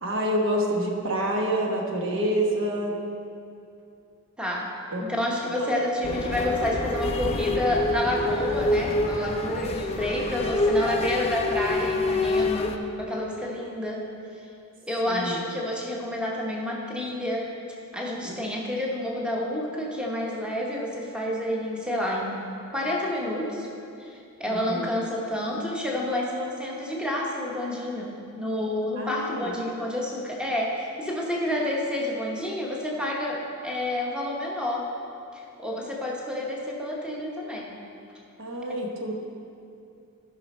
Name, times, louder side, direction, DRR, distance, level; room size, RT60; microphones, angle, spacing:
voice 1, 0.0-3.0 4.9-5.1 5.6-5.8 15.1-15.4 18.2-18.4 24.4-24.9 29.0-29.5 38.4-39.1, right 1 dB, 60° right, 0 dB, 1.1 m, -27 dB
voice 2, 4.4-4.7 5.0-14.5 14.9-17.5 17.9-23.7 24.0-34.9 35.3-37.8, left 1 dB, 5° right, -3 dB, 1.0 m, -29 dB
sound 1, 6.0-12.8, left 2 dB, 30° left, 0.5 m, -26 dB
14.5 x 5.8 x 4.2 m, 2.6 s
head